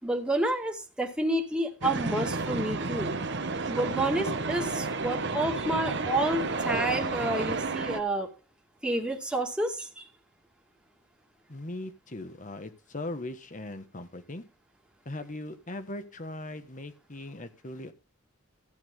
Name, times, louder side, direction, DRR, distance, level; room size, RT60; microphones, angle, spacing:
voice 1, 0.0-3.1 3.7-8.3 8.8-10.1, right 1 dB, 5° right, 0 dB, 2.2 m, -29 dB
sound 1, 1.8-8.0, right 3 dB, 60° right, 1.4 m, -31 dB
voice 2, 11.5-14.4 15.0-17.9, left 2 dB, 40° left, 10 dB, 1.4 m, -39 dB
14.5 x 8.7 x 3.9 m, 0.32 s
head